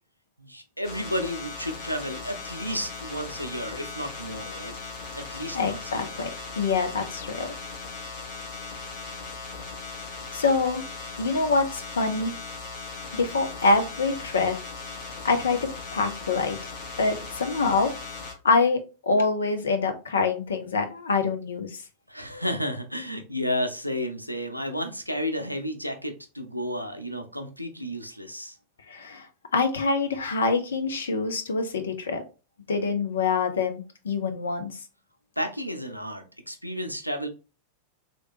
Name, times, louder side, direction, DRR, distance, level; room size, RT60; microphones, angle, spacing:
voice 1, 0.4-4.7 5.2-6.2 22.1-28.6 35.4-37.3, equal, 90° right, 6 dB, 0.5 m, -32 dB
sound 1, 0.8-18.3, left 4 dB, 50° left, 1.3 m, -38 dB
voice 2, 5.5-7.6 10.3-10.8 11.2-12.3 13.1-14.6 15.2-16.6 17.0-17.9 18.4-21.8 28.9-29.3 29.5-32.2 32.7-34.8, left 4 dB, 70° left, 6 dB, 0.6 m, -25 dB
3.2 x 2.9 x 2.7 m, 0.32 s
figure-of-eight pair, 90°, 0 cm